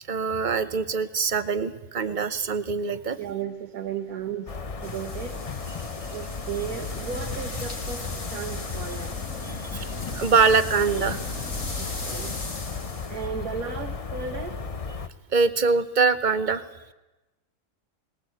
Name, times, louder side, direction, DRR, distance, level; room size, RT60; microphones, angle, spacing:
voice 1, 0.1-3.2 9.4-9.9 10.1-11.2 15.3-16.6, right 5 dB, 40° right, 13 dB, 0.8 m, -23 dB
voice 2, 3.2-4.6 4.8-5.4 6.1-9.2 11.8-12.3 13.1-14.6, right 7 dB, 80° right, 2 dB, 1.8 m, -34 dB
sound 1, 4.5-15.1, left 5 dB, 35° left, 0.7 m, -35 dB
sound 2, 4.8-13.2, left 2 dB, 60° left, 3.0 m, -37 dB
20.5 x 18.5 x 7.9 m, 1.1 s
omnidirectional pair, 1.5 m